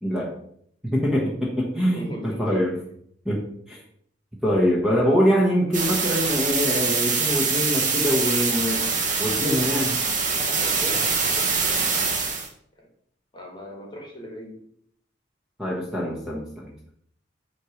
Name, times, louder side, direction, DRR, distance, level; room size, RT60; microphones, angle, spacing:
voice 1, 0.0-0.3 0.8-2.8 3.2-3.8 4.4-8.9 9.2-10.0 15.6-16.7, equal, 5° right, -4 dB, 1.2 m, -24 dB
voice 2, 1.9-2.6 10.2-11.9 12.8-12.9 13.3-14.6, equal, 25° left, 0 dB, 1.7 m, -39 dB
sound 1, 5.7-12.5, right 4 dB, 45° right, 1.2 m, -24 dB
8.9 x 3.2 x 5.0 m, 0.66 s
head